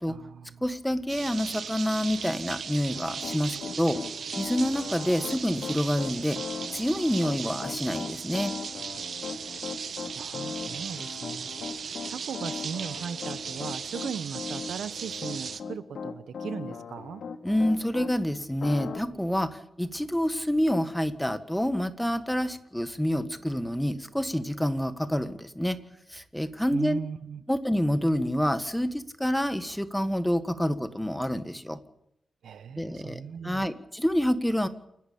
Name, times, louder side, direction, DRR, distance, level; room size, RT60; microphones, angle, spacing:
voice 1, 0.1-0.6 10.1-11.8 12.1-17.2 26.7-27.4 32.4-33.6, right 7 dB, 90° right, 14 dB, 1.1 m, -38 dB
voice 2, 0.6-4.0 4.4-6.4 6.7-8.5 17.4-25.8 26.1-27.0 27.5-31.8 32.8-34.7, equal, 5° left, 11 dB, 1.7 m, -27 dB
sound 1, 1.1-15.6, right 6 dB, 65° right, 1.4 m, -37 dB
Piano, 2.9-18.1 18.6-19.0, left 5 dB, 70° left, 2.5 m, -38 dB
29.0 x 12.0 x 8.7 m, 0.75 s
wide cardioid pair, 130°, 0 cm